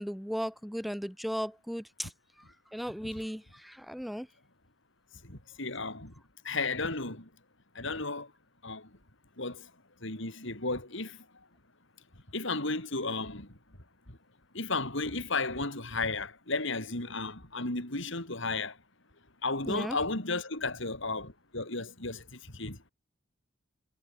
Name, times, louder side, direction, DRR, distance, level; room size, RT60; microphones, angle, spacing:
voice 1, 0.0-2.1 2.7-4.3 19.7-20.0, equal, ahead, 1.5 m, -36 dB
voice 2, 5.2-6.1 6.4-7.3 7.7-8.3 8.6-8.9 9.4-9.7 10.0-11.2 12.3-13.6 14.1-14.2 14.5-18.8 19.4-22.8, left 3 dB, 65° left, 5.9 m, -34 dB
head